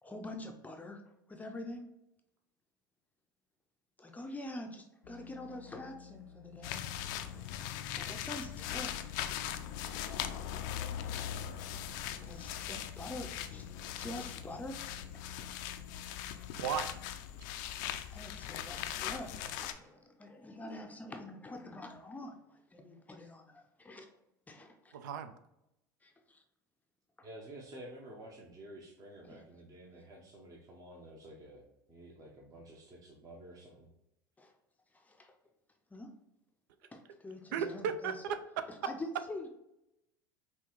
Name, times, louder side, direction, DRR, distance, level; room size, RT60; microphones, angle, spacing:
voice 1, 0.0-1.0 1.3-1.9 4.0-8.9 9.9-10.6 11.3-11.9 12.2-15.5 15.9-16.7 18.1-24.1 24.5-25.0 26.0-26.4 27.2-27.3 29.2-29.4 34.4-34.5 34.9-35.4 35.9-36.1 36.9-38.2 38.7-39.5, left 1 dB, 15° left, 0.5 m, -46 dB
sound 1, 5.0-17.1, left 7 dB, 85° left, 0.8 m, -54 dB
sound 2, 6.6-19.7, left 10 dB, 65° left, 0.4 m, -40 dB
voice 2, 16.6-16.9 24.9-25.3 37.5-38.6, right 7 dB, 70° right, 0.4 m, -35 dB
voice 3, 27.2-33.9, right 1 dB, 35° right, 0.9 m, -51 dB
5.7 x 2.3 x 3.0 m
hypercardioid pair, 75°, 11 cm